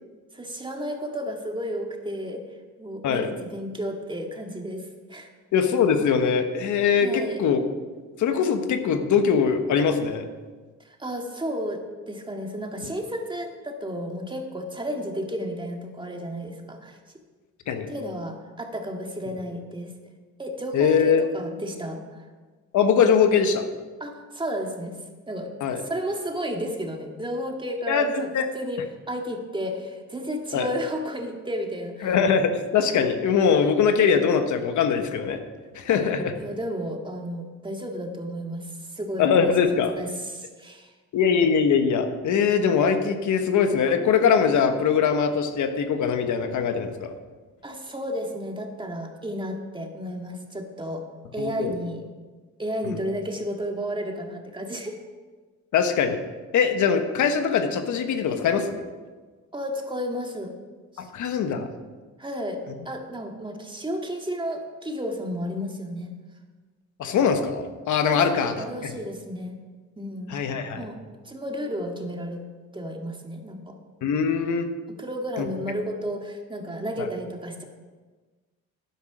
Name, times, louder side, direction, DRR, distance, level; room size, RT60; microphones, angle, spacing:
voice 1, 0.3-2.4 2.8-5.3 7.0-7.4 10.8-11.8 12.1-17.0 17.9-19.9 20.4-22.3 24.0-24.9 25.3-28.3 28.5-28.8 29.1-32.2 35.9-40.9 47.6-51.0 51.3-52.0 52.6-55.0 59.5-60.5 60.9-61.1 62.2-66.1 68.1-69.6 70.0-70.4 70.7-71.0 71.2-72.4 72.7-73.8 75.0-77.6, equal, 15° right, 2 dB, 1.9 m, -32 dB
voice 2, 5.5-7.6 8.2-10.2 17.7-17.9 20.7-21.2 22.7-23.7 25.6-25.8 27.9-28.5 30.5-30.7 32.0-35.4 35.7-36.3 39.2-39.9 41.1-47.1 51.4-51.7 52.8-53.0 55.7-56.2 56.5-58.9 61.0-61.7 67.0-68.5 68.8-68.9 70.3-70.8 74.0-74.7 75.4-75.5, left 6 dB, 75° left, 7 dB, 1.3 m, -22 dB
12.5 x 10.5 x 5.0 m, 1.4 s
cardioid pair, 90°, 30 cm